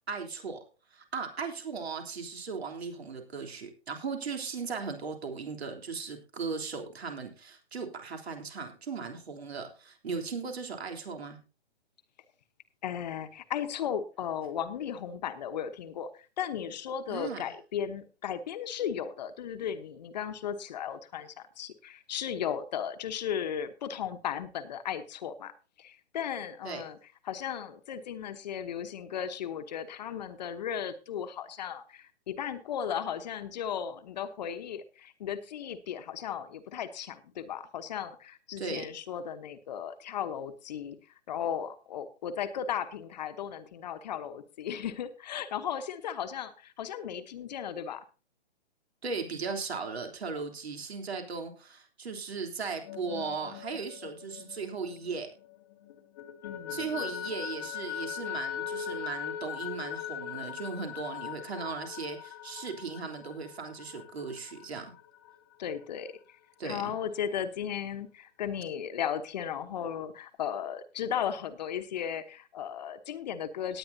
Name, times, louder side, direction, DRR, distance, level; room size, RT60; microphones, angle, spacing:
voice 1, 0.1-0.6 0.9-11.4 17.1-17.4 26.6-26.8 38.6-38.9 49.0-55.3 56.7-64.9 66.6-66.9, right 5 dB, 70° right, 4 dB, 3.4 m, -37 dB
voice 2, 12.8-16.1 16.4-25.5 25.8-27.0 27.2-41.0 41.3-48.0 56.4-57.0 65.6-66.4 66.6-73.8, left 8 dB, 40° left, 9 dB, 1.1 m, -36 dB
sound 1, 52.7-55.5 55.9-65.3, left 9 dB, 20° left, 0.7 m, -40 dB
18.5 x 9.5 x 2.7 m, 0.32 s
hypercardioid pair, 145°, 33 cm